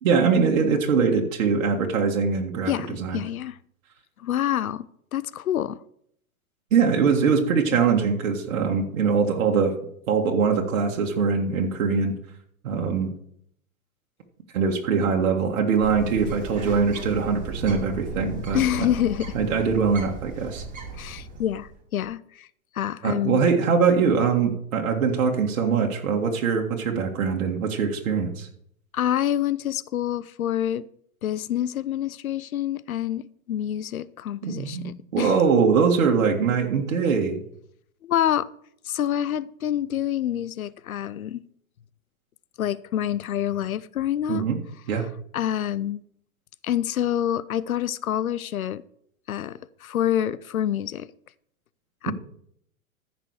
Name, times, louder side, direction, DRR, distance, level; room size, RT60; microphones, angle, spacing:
voice 1, 0.0-3.2 6.7-9.7 10.1-12.1 12.6-13.1 14.5-18.6 19.3-20.6 23.0-28.5 34.4-37.4 44.3-44.6 44.9-45.1 52.1-52.2, right 5 dB, 65° right, 1.9 m, -22 dB
voice 2, 2.7-3.6 4.2-4.8 5.1-5.8 18.5-19.3 21.0-22.5 22.7-23.4 28.9-30.9 31.2-35.3 38.0-38.5 38.8-41.4 42.6-44.5 45.3-46.0 46.6-48.8 49.3-51.1 52.0-52.1, left 11 dB, 75° left, 0.7 m, -27 dB
Bird, 15.8-21.8, right 2 dB, 20° right, 3.7 m, -36 dB
14.5 x 6.0 x 4.8 m
hypercardioid pair, 105°, 42 cm